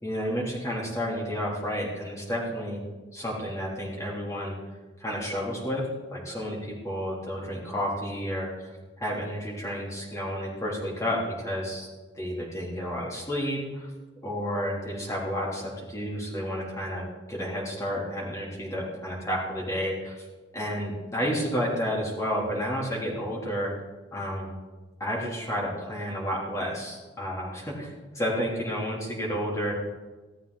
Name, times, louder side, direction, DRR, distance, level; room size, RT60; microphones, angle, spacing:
voice 1, 0.0-2.8 3.1-4.5 5.0-8.7 9.0-11.9 12.1-13.9 14.2-20.3 20.5-23.7 24.1-24.6 25.0-29.7, equal, 15° left, -4 dB, 3.4 m, -31 dB
16.0 x 13.0 x 4.1 m, 1.3 s
head